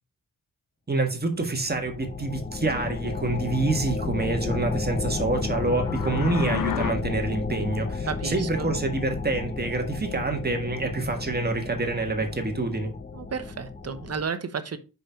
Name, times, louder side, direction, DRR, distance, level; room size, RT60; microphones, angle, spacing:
voice 1, 0.9-12.9, right 2 dB, 30° right, 1.5 m, -27 dB
sound 1, 1.5-14.2, left 4 dB, 25° left, 0.7 m, -32 dB
sound 2, 5.5-6.9, left 10 dB, 70° left, 0.6 m, -32 dB
voice 2, 8.1-8.7 13.1-14.8, right 6 dB, 45° right, 0.9 m, -32 dB
5.4 x 5.3 x 4.5 m
wide cardioid pair, 90°, 34 cm